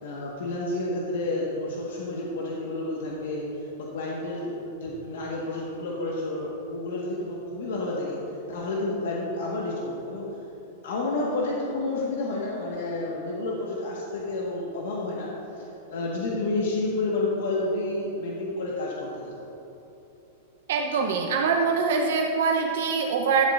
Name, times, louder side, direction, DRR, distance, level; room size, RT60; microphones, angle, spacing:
voice 1, 0.0-3.4 3.8-8.2 8.5-10.3 10.8-15.3 15.9-19.3, left 2 dB, 80° left, -4 dB, 1.6 m, -30 dB
voice 2, 20.7-23.4, right 5 dB, 70° right, 1 dB, 0.8 m, -24 dB
12.5 x 11.5 x 2.6 m, 3.0 s
supercardioid pair, 165°, 0 cm